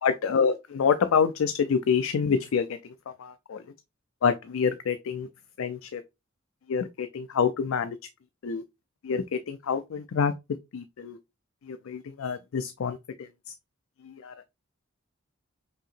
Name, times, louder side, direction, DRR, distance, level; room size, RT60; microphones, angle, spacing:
voice 1, 0.0-2.8 3.1-3.6 4.2-5.3 5.6-6.0 6.7-8.0 8.4-8.6 9.0-10.3 10.7-11.2 11.7-13.3 14.0-14.3, left 6 dB, 80° left, 0.4 m, -27 dB
5.5 x 2.8 x 2.4 m
head